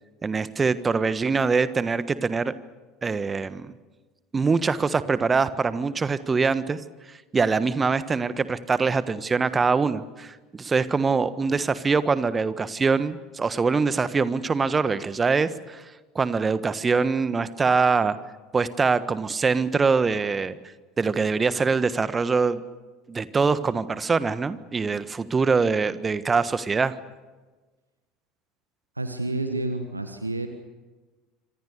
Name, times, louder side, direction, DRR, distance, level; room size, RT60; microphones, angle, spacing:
voice 1, 0.2-2.5 3.0-3.7 4.3-6.8 7.3-15.8 16.1-18.2 18.5-20.6 21.0-22.6 23.1-26.9, right 4 dB, 20° right, 14 dB, 1.5 m, -23 dB
voice 2, 28.9-30.5, right 2 dB, 85° right, 7 dB, 1.5 m, -29 dB
27.5 x 26.0 x 6.8 m, 1.3 s
figure-of-eight pair, 70°, 0 cm